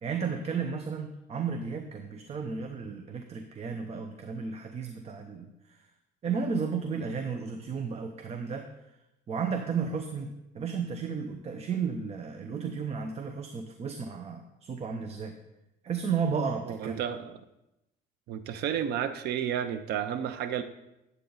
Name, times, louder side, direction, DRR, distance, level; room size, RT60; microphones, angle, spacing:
voice 1, 0.0-5.8 6.2-8.7 9.3-10.3 10.5-15.4 15.8-17.0, right 6 dB, 40° right, 5 dB, 0.8 m, -33 dB
voice 2, 16.7-17.4 18.3-20.6, right 9 dB, 75° right, 9 dB, 0.7 m, -31 dB
10.0 x 8.2 x 4.0 m, 0.90 s
cardioid pair, 110°, 17 cm